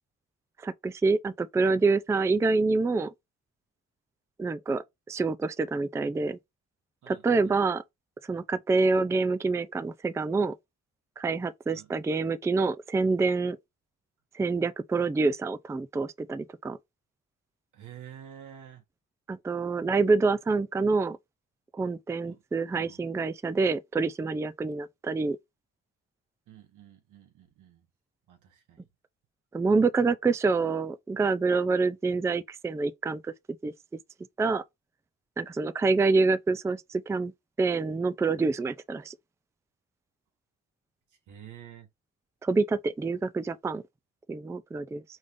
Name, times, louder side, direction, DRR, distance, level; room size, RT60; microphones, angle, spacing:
voice 1, 0.6-3.1 4.4-6.4 7.1-7.8 8.3-10.5 11.2-13.6 14.3-16.8 19.3-21.2 21.7-25.4 29.5-33.3 33.6-33.7 34.4-34.6 35.4-37.3 37.6-39.2 42.4-43.8 44.3-45.0, right 3 dB, 10° right, 0.3 m, -26 dB
voice 2, 7.0-7.6 11.7-11.9 17.7-18.8 22.3-22.4 22.7-23.0 26.5-27.8 28.3-28.9 41.3-41.9, right 10 dB, 85° right, 1.5 m, -49 dB
5.3 x 3.4 x 2.6 m
cardioid pair, 90°, 30 cm